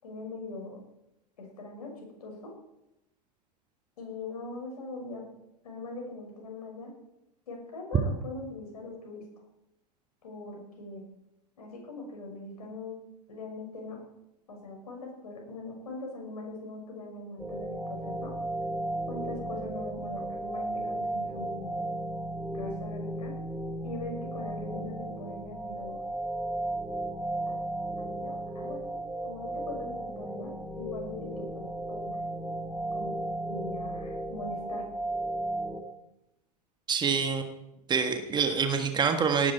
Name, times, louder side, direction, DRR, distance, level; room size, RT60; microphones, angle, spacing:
voice 1, 0.0-0.8 1.4-2.5 4.0-5.3 5.6-6.9 7.5-9.2 10.2-11.0 11.6-13.0 13.3-14.0 14.5-18.3 19.1-21.8 22.5-23.3 23.8-26.0 27.5-27.6 28.0-32.2 32.9-33.1 33.5-34.8, left 3 dB, 65° left, 1 dB, 6.5 m, -41 dB
sound 1, 17.4-35.8, right 1 dB, 5° right, 1.7 m, -35 dB
voice 2, 36.9-37.4 37.9-39.5, right 6 dB, 20° right, 6 dB, 1.6 m, -26 dB
18.5 x 12.0 x 4.7 m, 0.88 s
figure-of-eight pair, 90°, 21 cm